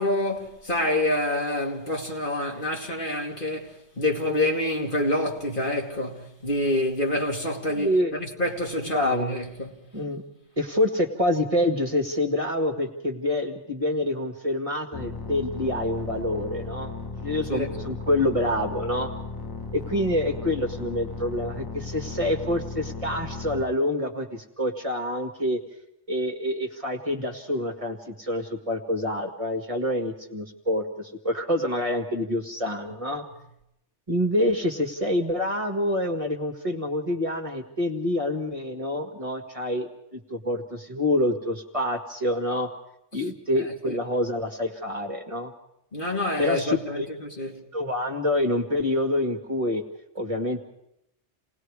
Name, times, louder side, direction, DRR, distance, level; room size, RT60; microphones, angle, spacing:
voice 1, 0.0-9.7 17.5-17.7 43.9-44.0 45.9-47.6, left 1 dB, 45° left, 2.6 m, -27 dB
voice 2, 7.7-8.1 8.9-9.3 9.9-10.2 10.6-19.1 19.7-25.6 26.1-33.2 34.1-42.7 43.1-45.5 46.4-47.1 47.7-49.8 50.1-50.6, left 1 dB, 30° right, 1.9 m, -27 dB
sound 1, 14.9-23.7, left 4 dB, 20° left, 1.1 m, -36 dB
29.0 x 19.5 x 4.8 m
omnidirectional pair, 1.2 m